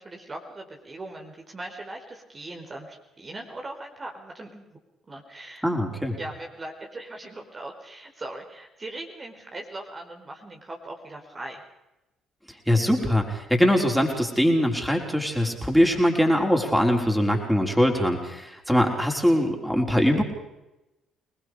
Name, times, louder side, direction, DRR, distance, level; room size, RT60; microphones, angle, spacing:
voice 1, 0.0-4.8 5.1-5.7 6.2-11.6, right 2 dB, 30° right, 1 dB, 4.7 m, -40 dB
voice 2, 5.6-6.2 12.7-20.2, equal, ahead, 1 dB, 5.6 m, -22 dB
27.5 x 20.5 x 5.1 m, 0.94 s
hypercardioid pair, 55°, 0 cm